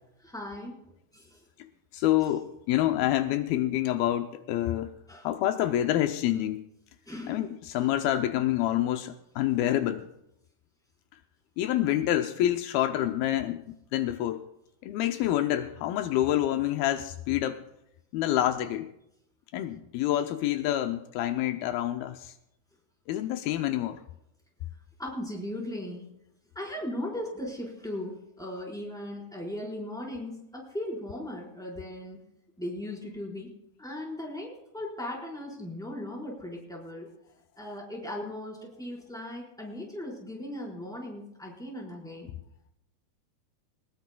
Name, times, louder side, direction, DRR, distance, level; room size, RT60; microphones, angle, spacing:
voice 1, 0.2-1.4 5.1-5.3 7.1-7.4 25.0-26.1 26.5-32.2 32.6-33.5 33.8-37.1 37.6-42.3, left 1 dB, ahead, 4.0 m, -38 dB
voice 2, 1.6-4.9 5.2-6.7 7.3-10.1 11.6-13.7 13.9-14.5 14.8-17.7 18.1-18.9 19.5-22.3 23.1-24.0, left 13 dB, 85° left, 2.5 m, -27 dB
21.5 x 19.5 x 2.3 m
omnidirectional pair, 4.3 m